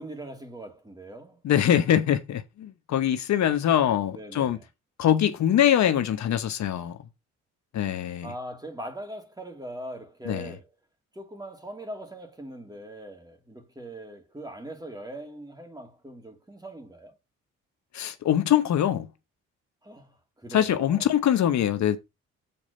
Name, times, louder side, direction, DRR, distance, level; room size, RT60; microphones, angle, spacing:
voice 1, 0.0-1.4 4.1-4.6 8.2-10.7 11.1-17.2 19.8-21.1, right 1 dB, 15° right, 2.7 m, -41 dB
voice 2, 1.4-4.6 5.0-7.0 7.7-8.3 10.2-10.6 17.9-19.1 20.5-22.0, left 10 dB, 65° left, 1.0 m, -23 dB
7.1 x 4.2 x 6.6 m
cardioid pair, 90°, 30 cm